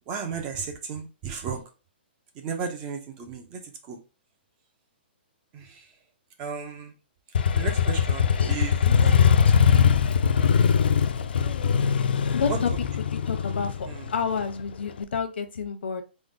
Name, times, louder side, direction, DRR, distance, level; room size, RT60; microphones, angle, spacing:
voice 1, 0.1-1.6 2.4-3.6 3.9-4.0 5.5-5.8 6.4-6.9 7.5-8.8 12.5-12.6 13.9-14.0, right 6 dB, 15° right, 0.3 m, -34 dB
Motorcycle, 7.3-15.0, left 7 dB, 65° left, 0.4 m, -21 dB
voice 2, 8.3-9.9 12.3-12.7 13.0-16.0, left 6 dB, 80° left, 0.8 m, -31 dB
3.7 x 2.1 x 3.6 m
hypercardioid pair, 180°, 6 cm